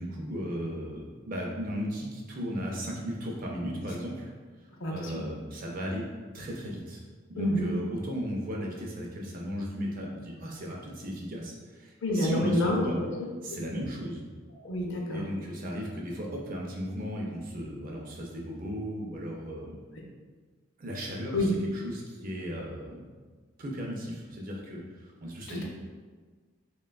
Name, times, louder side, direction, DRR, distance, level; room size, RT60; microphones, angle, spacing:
voice 1, 0.0-4.3 4.9-6.0 6.3-7.0 7.3-13.0 13.4-14.3 15.1-19.8 20.8-23.1 23.6-25.6, equal, 40° right, -2 dB, 0.4 m, -36 dB
voice 2, 4.8-5.2 7.4-7.7 12.0-13.2 13.5-13.6 14.6-15.2 21.3-21.5 25.5-25.6, left 1 dB, 60° left, 0 dB, 0.5 m, -28 dB
3.3 x 2.2 x 2.2 m, 1.4 s
head